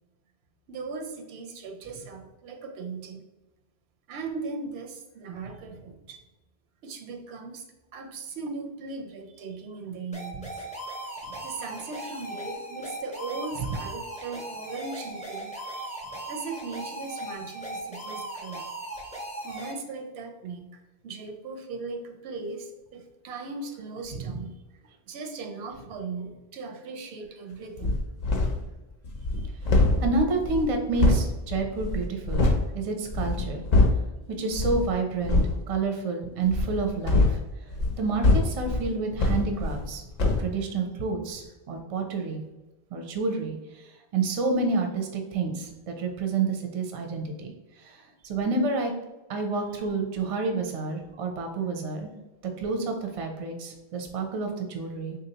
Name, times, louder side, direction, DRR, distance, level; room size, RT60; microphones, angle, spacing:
voice 1, 0.7-3.2 4.1-6.2 6.8-7.6 7.9-10.4 11.4-16.0 16.3-18.6 19.4-24.5 25.1-28.0 29.9-30.0, right 4 dB, 80° right, 5 dB, 0.8 m, -38 dB
sound 1, 10.1-19.7, right 1 dB, 10° left, 0.5 m, -38 dB
sound 2, 27.8-28.7 29.0-32.7 33.1-34.1 34.5-34.9 35.2-35.6 36.5-39.9 40.2-40.5, left 2 dB, 50° left, 0.5 m, -24 dB
voice 2, 30.0-32.5 32.7-33.6 34.4-37.4 38.0-42.4 42.9-43.6 44.1-47.5 47.8-48.0 48.2-48.9 49.3-52.1 52.6-55.2, right 3 dB, 45° right, 3 dB, 0.5 m, -29 dB
3.6 x 2.6 x 2.8 m, 1.1 s
omnidirectional pair, 1.0 m